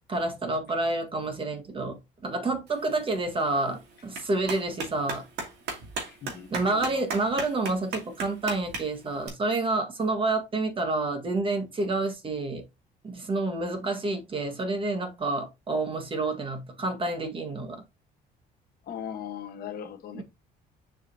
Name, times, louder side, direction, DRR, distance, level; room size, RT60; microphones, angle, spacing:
voice 1, 0.1-5.2 6.5-12.6 13.0-17.8 20.1-20.2, right 2 dB, 30° right, 1.6 m, -29 dB
Clapping, 2.7-9.3, right 4 dB, 80° right, 2.5 m, -38 dB
voice 2, 6.1-7.0 18.9-20.2, left 8 dB, 65° left, 1.3 m, -39 dB
6.8 x 5.1 x 2.7 m
cardioid pair, 110°, 17 cm